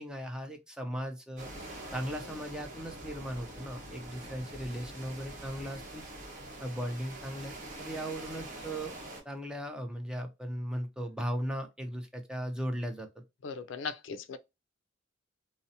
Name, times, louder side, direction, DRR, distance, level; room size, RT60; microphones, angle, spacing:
voice 1, 0.0-1.5 1.9-6.0 6.6-8.9 9.3-13.1, equal, 5° right, 0.4 m, -37 dB
sound 1, 1.4-9.2, right 1 dB, 45° right, 0.9 m, -45 dB
voice 2, 13.4-14.4, left 5 dB, 70° left, 0.4 m, -38 dB
2.6 x 2.0 x 2.6 m
head